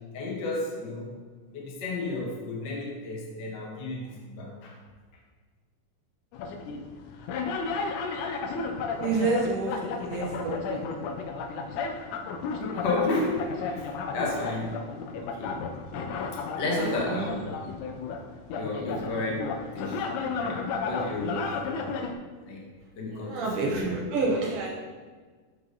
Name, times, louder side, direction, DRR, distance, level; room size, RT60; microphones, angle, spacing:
voice 1, 0.1-1.1 1.5-4.7 12.6-14.8 15.2-15.6 16.6-17.6 18.5-20.6 20.8-21.5 22.5-22.6 22.9-23.8, left 2 dB, 55° left, -2 dB, 1.3 m, -32 dB
sound 1, 6.3-22.1, left 4 dB, 80° left, 1.9 m, -33 dB
voice 2, 9.0-10.8 16.8-17.3 23.1-24.7, right 3 dB, 90° right, -3 dB, 1.2 m, -29 dB
7.0 x 5.4 x 3.8 m, 1.5 s
omnidirectional pair, 3.9 m